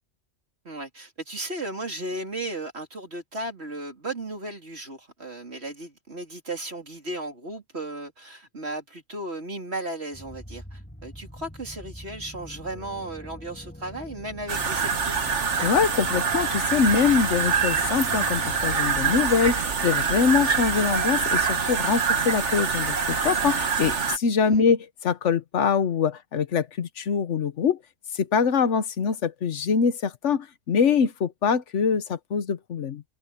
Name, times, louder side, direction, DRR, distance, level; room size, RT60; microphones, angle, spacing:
voice 1, 0.6-15.1 24.5-24.6, right 1 dB, 65° right, 4.1 m, -35 dB
sound 1, 10.1-18.8, equal, 10° left, 2.4 m, -43 dB
sound 2, 14.5-24.2, right 5 dB, 80° right, 1.8 m, -25 dB
voice 2, 15.6-27.8 28.1-33.0, left 6 dB, 85° left, 1.3 m, -24 dB
omnidirectional pair, 1.2 m